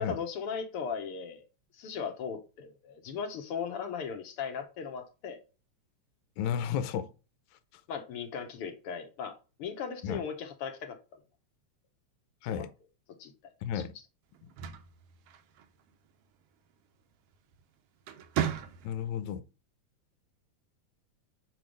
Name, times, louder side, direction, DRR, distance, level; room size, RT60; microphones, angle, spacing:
voice 1, 0.0-1.5 1.7-5.4 7.9-11.0 12.4-12.6 13.2-13.3 13.7-13.8, left 6 dB, 65° left, 1.6 m, -37 dB
voice 2, 6.4-7.1 10.0-10.2 12.4-12.7 13.6-13.9 18.8-19.4, left 9 dB, 80° left, 2.0 m, -32 dB
sound 1, 14.3-15.9 17.3-17.6 18.0-19.2, right 9 dB, 70° right, 1.5 m, -35 dB
6.2 x 4.8 x 5.1 m
omnidirectional pair, 3.3 m